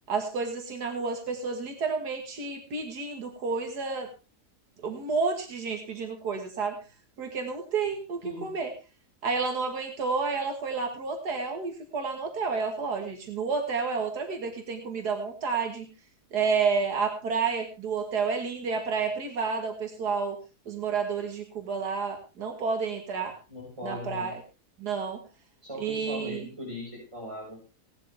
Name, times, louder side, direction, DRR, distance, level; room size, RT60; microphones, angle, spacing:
voice 1, 0.1-4.1 4.8-6.8 7.2-8.7 9.2-15.9 16.3-20.4 20.7-23.4 23.8-24.3 24.8-25.2 25.8-26.5, right 5 dB, 90° right, 4 dB, 2.3 m, -30 dB
voice 2, 23.5-24.3 25.6-27.7, left 1 dB, 20° right, -5 dB, 5.4 m, -39 dB
17.5 x 12.0 x 3.4 m, 0.31 s
omnidirectional pair, 1.7 m